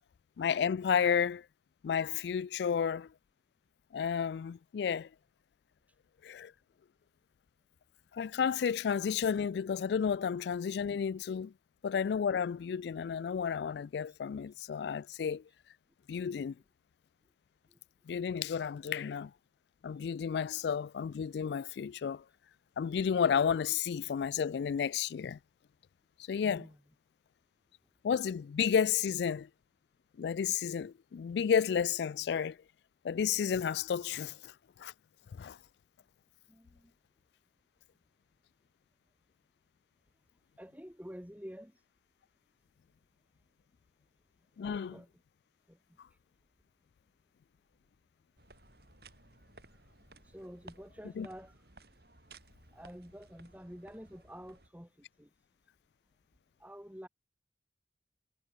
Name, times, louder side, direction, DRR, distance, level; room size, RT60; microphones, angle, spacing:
voice 1, 0.4-1.5 1.8-3.1 3.9-5.1 6.2-6.5 8.1-11.5 11.8-15.4 16.1-16.6 18.1-19.3 19.8-22.2 22.8-25.4 26.3-26.7 28.0-29.5 30.2-32.6 33.0-34.5 34.8-34.9 35.3-35.6 44.6-45.0 51.2-51.3, left 7 dB, 70° left, 0.3 m, -32 dB
voice 2, 26.4-26.8 36.5-36.9 40.6-41.8 44.6-45.1 45.7-45.8 46.1-46.2 49.7-49.8 50.2-51.6 52.7-55.3 56.6-57.1, equal, 10° right, 3.6 m, -49 dB
sound 1, 48.4-54.7, right 2 dB, 60° right, 6.5 m, -58 dB
head